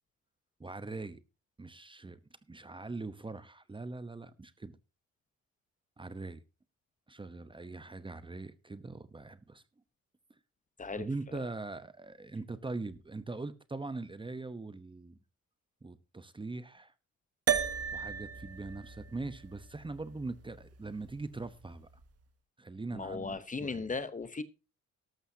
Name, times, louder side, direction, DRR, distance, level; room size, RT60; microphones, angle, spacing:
voice 1, 0.6-1.2 1.6-2.2 2.5-4.7 6.0-6.4 7.1-9.6 11.0-15.2 15.8-16.9 17.9-21.9 22.6-23.9, right 3 dB, 15° right, 0.9 m, -41 dB
sound 1, 17.5-22.0, right 7 dB, 50° right, 1.3 m, -37 dB
voice 2, 22.9-24.4, left 4 dB, 25° left, 0.9 m, -37 dB
13.0 x 12.5 x 2.8 m
cardioid pair, 90°, 30 cm